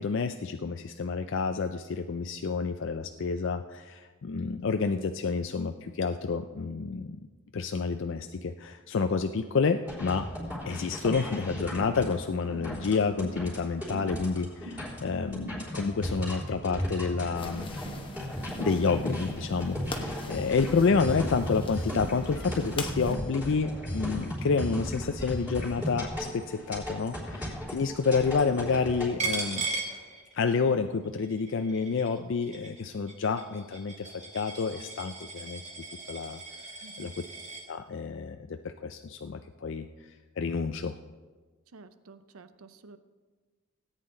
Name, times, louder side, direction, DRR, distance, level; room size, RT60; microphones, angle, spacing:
voice 1, 0.0-7.2 7.5-10.3 10.7-17.8 18.6-29.7 30.3-34.1 34.3-35.6 36.1-36.4 37.0-37.2 37.7-39.9 40.4-41.0, left 5 dB, 55° left, 7 dB, 0.4 m, -29 dB
sound 1, 9.8-29.1, equal, 5° right, 3.7 m, -36 dB
sound 2, 17.4-23.2, left 3 dB, 25° left, 1.0 m, -43 dB
Coin (dropping), 29.2-30.7 31.0-37.7, right 3 dB, 35° right, 1.6 m, -38 dB
voice 2, 36.8-37.1 41.7-43.0, right 3 dB, 80° right, 11 dB, 0.7 m, -51 dB
17.5 x 9.0 x 3.8 m, 1.4 s
head